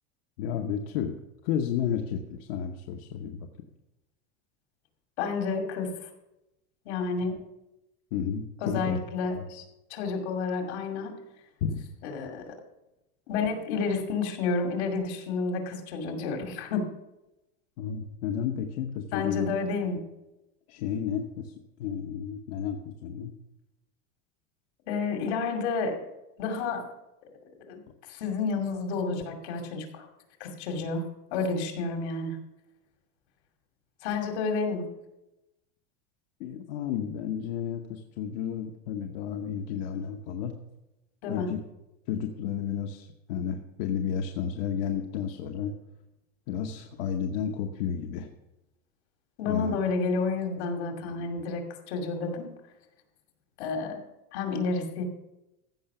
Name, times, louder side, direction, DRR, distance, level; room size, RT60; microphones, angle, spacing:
voice 1, 0.4-1.2 1.4-3.5 8.1-9.0 9.4-9.5 11.6-11.8 17.8-19.5 20.7-21.5 21.8-23.3 36.4-40.5 41.3-41.6 42.1-45.8 46.5-48.3 49.4-49.8, left 8 dB, 60° left, 4 dB, 1.0 m, -32 dB
voice 2, 5.2-6.1 6.8-7.4 8.6-9.6 9.9-11.1 12.0-12.6 13.3-16.9 19.1-20.0 24.9-26.0 26.4-26.8 27.7-27.8 28.1-30.1 30.4-31.1 31.3-32.4 34.0-34.9 41.2-41.5 49.4-52.5 53.6-54.0 54.3-55.0, left 4 dB, 75° left, 4 dB, 2.5 m, -30 dB
15.0 x 5.7 x 6.8 m, 0.94 s
supercardioid pair, 175°, 34 cm